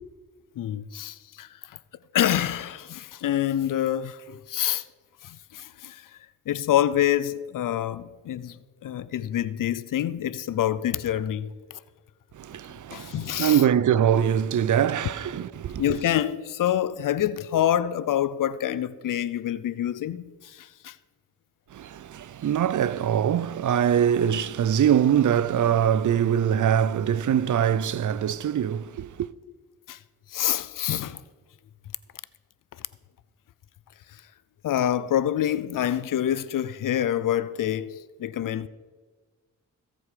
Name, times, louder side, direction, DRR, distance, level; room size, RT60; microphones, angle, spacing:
voice 1, 0.6-1.8 2.1-4.8 5.2-6.1 6.5-11.5 12.9-13.6 15.8-21.0 29.9-30.0 30.3-31.2 34.1-34.2 34.6-38.7, left 11 dB, 85° left, 0.5 m, -27 dB
voice 2, 12.3-15.8 21.7-29.3, right 9 dB, 70° right, 0.5 m, -23 dB
17.5 x 7.7 x 5.1 m
cardioid pair, 55°, 32 cm